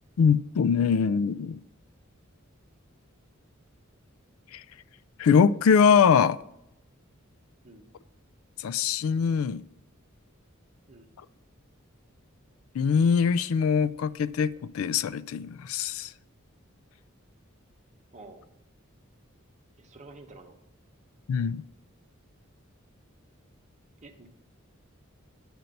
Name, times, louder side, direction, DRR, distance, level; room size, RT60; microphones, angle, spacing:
voice 1, 0.2-1.6 4.5-4.6 5.2-6.4 8.6-9.6 12.7-16.1 21.3-21.6, left 6 dB, 85° left, 0.4 m, -23 dB
voice 2, 18.1-18.4 19.8-20.6 24.0-24.3, right 2 dB, 35° right, 1.0 m, -49 dB
9.2 x 4.4 x 5.2 m
head